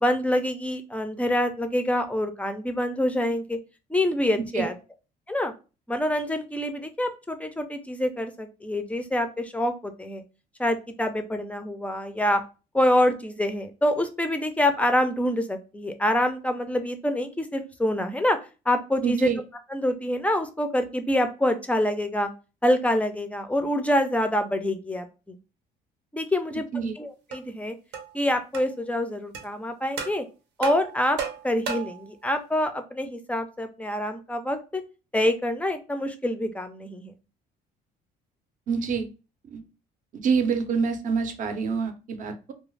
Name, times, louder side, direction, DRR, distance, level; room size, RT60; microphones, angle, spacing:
voice 1, 0.0-3.6 3.9-4.7 5.3-5.5 5.9-10.2 10.6-12.4 12.7-18.4 18.7-19.3 19.7-22.3 22.6-25.4 26.1-26.7 27.0-27.7 28.1-30.2 30.6-31.2 31.4-34.8 35.1-37.1, left 1 dB, 10° left, 8 dB, 0.4 m, -26 dB
voice 2, 19.0-19.4 26.7-26.9 38.7-39.1 39.5-39.6 40.1-42.5, right 5 dB, 50° right, 7 dB, 0.6 m, -26 dB
sound 1, 27.3-27.4 27.9-28.1 28.5-28.7 29.3-29.5 30.0-30.2 30.6-32.0, right 6 dB, 80° right, 0.7 m, -33 dB
2.4 x 2.3 x 3.1 m, 0.31 s
cardioid pair, 110°, 17 cm